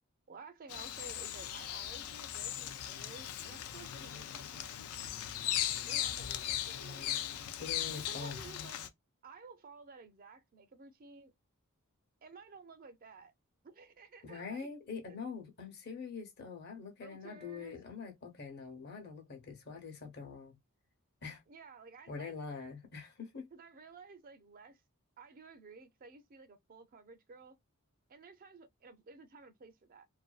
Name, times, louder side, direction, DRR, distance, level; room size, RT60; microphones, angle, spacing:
voice 1, 0.3-4.9 5.8-7.4 7.9-8.8 9.2-11.3 12.2-13.3 13.6-14.7 17.0-17.8 21.5-22.3 23.5-24.8 25.2-27.6 28.1-30.1, right 4 dB, 40° right, 0.4 m, -54 dB
Bird vocalization bird call bird song, 0.7-8.9, left 11 dB, 85° left, 0.4 m, -38 dB
voice 2, 7.6-8.5 14.2-20.5 21.2-21.4 22.1-23.4, left 5 dB, 50° left, 0.8 m, -44 dB
2.5 x 2.2 x 2.3 m
head